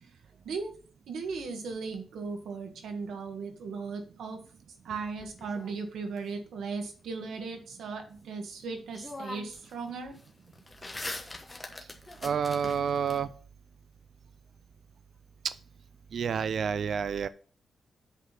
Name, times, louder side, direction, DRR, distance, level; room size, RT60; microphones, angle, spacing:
voice 1, 0.4-0.7 1.1-4.4 4.8-10.2, right 4 dB, 90° right, 4 dB, 1.6 m, -37 dB
sound 1, 4.9-6.2 8.4-8.5 8.9-9.7 10.0-13.2, left 2 dB, 15° left, 1.1 m, -42 dB
voice 2, 12.2-13.3 16.1-17.3, right 7 dB, 50° right, 14 dB, 0.4 m, -29 dB
8.0 x 4.2 x 5.8 m, 0.41 s
wide cardioid pair, 175°, 0 cm